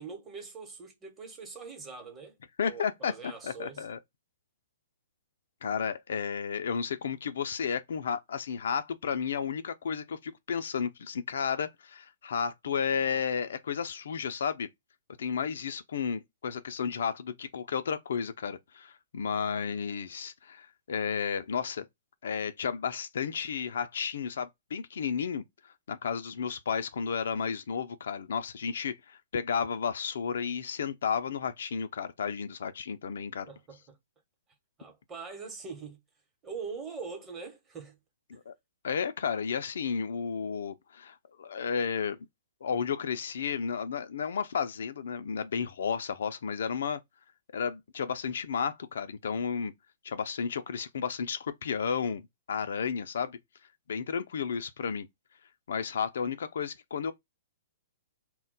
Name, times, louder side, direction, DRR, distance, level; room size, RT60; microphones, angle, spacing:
voice 1, 0.0-2.4 2.6-3.9 33.5-34.0 34.8-36.0 36.4-38.0, right 5 dB, 20° right, 0.9 m, -42 dB
voice 2, 2.6-4.0 5.6-14.7 15.2-21.9 22.2-25.4 25.9-33.5 38.3-38.5 38.8-42.2 42.6-47.0 47.5-49.7 50.0-53.4 53.9-55.1 55.7-57.1, left 6 dB, 70° left, 0.3 m, -32 dB
2.2 x 2.1 x 3.8 m
hypercardioid pair, 130°, 0 cm